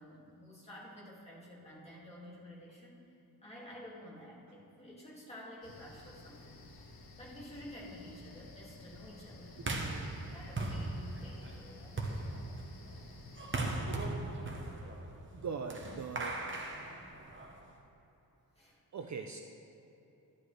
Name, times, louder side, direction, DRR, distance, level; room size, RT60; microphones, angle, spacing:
voice 1, 0.0-3.1 3.4-6.6 7.2-9.7 10.3-12.5 18.6-18.8, left 1 dB, 15° left, -6 dB, 2.2 m, -51 dB
sound 1, 5.6-13.7, left 2 dB, 70° left, 1.2 m, -53 dB
sound 2, 9.6-17.7, right 2 dB, 30° right, 1.0 m, -39 dB
voice 2, 15.3-16.4 18.9-19.4, right 5 dB, 45° right, 4 dB, 0.5 m, -41 dB
12.5 x 11.0 x 3.3 m, 3.0 s
wide cardioid pair, 165°, 39 cm